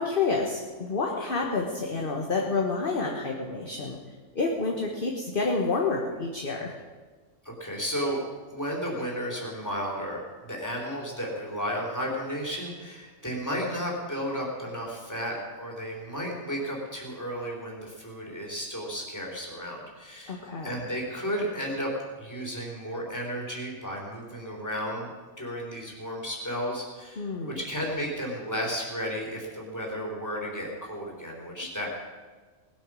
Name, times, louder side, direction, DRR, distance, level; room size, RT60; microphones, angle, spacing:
voice 1, 0.0-4.0 4.3-6.7 20.3-20.8 27.2-27.6, left 3 dB, 40° left, 1 dB, 1.4 m, -29 dB
voice 2, 7.4-8.2 8.5-21.9 22.2-25.1 25.4-31.9, equal, 15° left, -2 dB, 3.5 m, -33 dB
19.5 x 8.9 x 6.3 m, 1.4 s
omnidirectional pair, 1.4 m